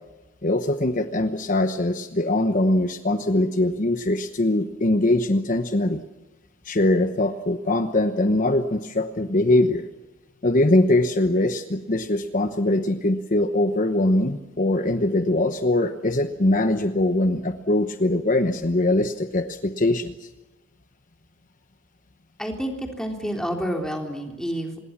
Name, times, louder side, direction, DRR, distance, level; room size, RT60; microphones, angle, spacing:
voice 1, 0.4-6.0 6.6-9.9 10.4-20.3, left 1 dB, 45° left, 8 dB, 1.1 m, -22 dB
voice 2, 22.4-24.8, equal, 5° left, 2 dB, 3.5 m, -29 dB
26.0 x 21.0 x 7.3 m, 1.1 s
head